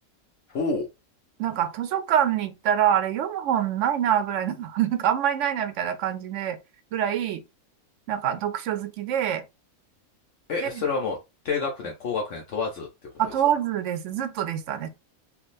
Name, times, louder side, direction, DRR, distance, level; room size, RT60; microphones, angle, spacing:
voice 1, 0.5-0.9 10.5-11.2 11.4-12.9 13.2-13.3, left 4 dB, 65° left, 1.0 m, -28 dB
voice 2, 1.4-6.6 6.9-7.4 8.1-9.4 10.6-10.8 13.2-14.9, right 10 dB, 70° right, 0.8 m, -25 dB
3.5 x 2.5 x 2.5 m
omnidirectional pair, 1.5 m